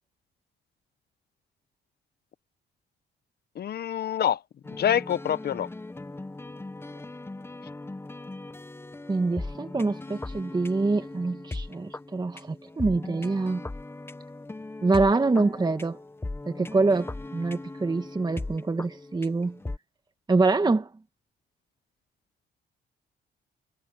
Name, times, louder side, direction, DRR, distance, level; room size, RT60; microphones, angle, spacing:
voice 1, 3.6-4.4 4.7-5.7, left 9 dB, 55° left, 0.8 m, -26 dB
sound 1, 4.6-19.8, left 2 dB, 10° left, 0.8 m, -39 dB
voice 2, 9.1-13.7 14.8-16.0 16.5-19.6 20.3-20.9, right 3 dB, 20° right, 1.3 m, -25 dB
cardioid pair, 90°, 20 cm